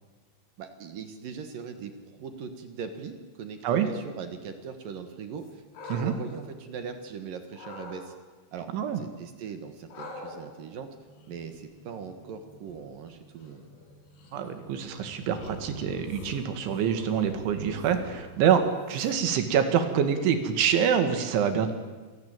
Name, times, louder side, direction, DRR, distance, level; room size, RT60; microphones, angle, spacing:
voice 1, 0.6-8.1 8.5-8.7 8.9-10.9 11.3-13.6, right 6 dB, 60° right, 7 dB, 2.7 m, -40 dB
sound 1, 5.4-7.1 7.5-8.0 9.9-19.4, left 3 dB, 65° left, 5.4 m, -45 dB
voice 2, 14.3-21.7, right 8 dB, 80° right, 8 dB, 4.4 m, -26 dB
27.0 x 18.0 x 9.0 m, 1.3 s
omnidirectional pair, 5.3 m